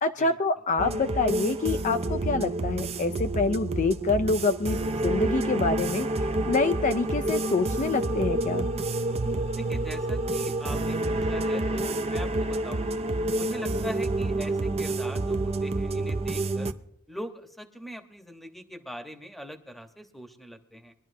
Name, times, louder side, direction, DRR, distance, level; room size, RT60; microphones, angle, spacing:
voice 1, 0.0-8.7, left 3 dB, 35° left, 8 dB, 0.4 m, -26 dB
sound 1, 0.8-16.7, right 2 dB, 30° right, 0.5 m, -28 dB
voice 2, 9.5-12.9 13.3-16.7 17.1-20.9, equal, ahead, 5 dB, 1.0 m, -41 dB
22.5 x 12.0 x 2.7 m, 0.70 s
head